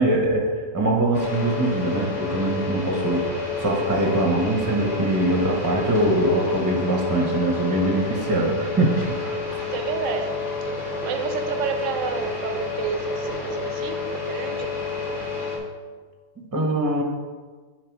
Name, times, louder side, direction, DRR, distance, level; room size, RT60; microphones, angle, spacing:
voice 1, 0.0-3.3 3.6-9.4 16.5-17.0, right 1 dB, 15° right, 1 dB, 0.9 m, -22 dB
sound 1, 1.1-15.6, left 4 dB, 60° left, 2.0 m, -29 dB
voice 2, 9.7-14.8, right 6 dB, 70° right, 7 dB, 1.0 m, -30 dB
9.7 x 4.6 x 4.6 m, 1.5 s
omnidirectional pair, 1.4 m